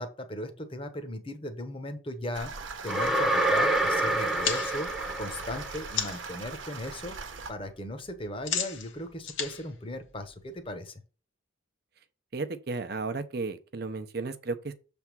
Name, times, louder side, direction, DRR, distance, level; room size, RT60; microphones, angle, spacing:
voice 1, 0.0-4.9 5.2-7.2 7.5-11.0, left 1 dB, 25° left, 0.9 m, -37 dB
sound 1, 2.3-7.5, right 4 dB, 75° right, 1.0 m, -40 dB
sound 2, 2.9-6.0, right 1 dB, ahead, 0.8 m, -27 dB
sound 3, 4.4-6.4 6.7-7.2 7.4-10.7, left 7 dB, 75° left, 1.3 m, -35 dB
voice 2, 12.3-14.7, right 3 dB, 50° right, 0.7 m, -34 dB
6.9 x 3.5 x 6.0 m
head